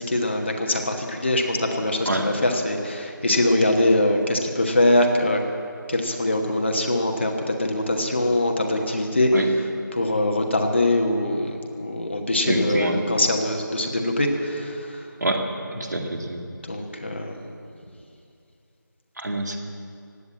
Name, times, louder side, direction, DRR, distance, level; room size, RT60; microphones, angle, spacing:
voice 1, 0.0-5.4 5.9-9.3 9.9-15.0 16.6-17.6, left 1 dB, 30° left, 2 dB, 1.3 m, -23 dB
voice 2, 12.5-13.0 15.2-15.4 15.7-16.4 19.2-19.6, right 1 dB, 55° right, 3 dB, 2.0 m, -25 dB
16.5 x 9.0 x 9.7 m, 2.6 s
figure-of-eight pair, 175°, 11 cm